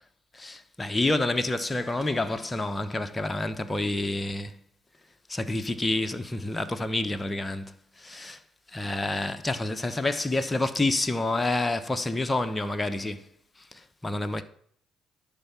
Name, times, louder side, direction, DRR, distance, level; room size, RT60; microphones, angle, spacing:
voice 1, 0.3-4.6 5.3-8.4 8.7-13.2 13.7-14.4, left 2 dB, 20° left, 1.0 m, -28 dB
11.0 x 4.6 x 7.4 m
hypercardioid pair, 55°, 0 cm